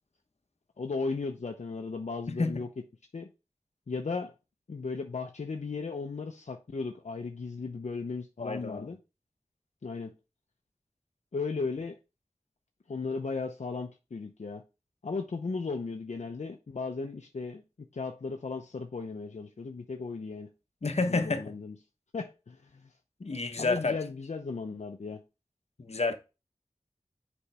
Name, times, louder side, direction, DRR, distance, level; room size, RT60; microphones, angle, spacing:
voice 1, 0.8-2.7 3.1-3.3 3.9-4.3 4.7-9.0 9.8-10.1 11.3-12.0 12.9-14.6 15.0-17.6 17.9-20.5 21.1-21.7 22.1-22.9 23.6-25.2, left 4 dB, 80° left, 0.7 m, -36 dB
voice 2, 8.4-8.9 20.8-21.5 23.2-24.0 25.8-26.2, left 3 dB, 65° left, 1.0 m, -29 dB
7.0 x 5.2 x 3.4 m
wide cardioid pair, 60°, 12 cm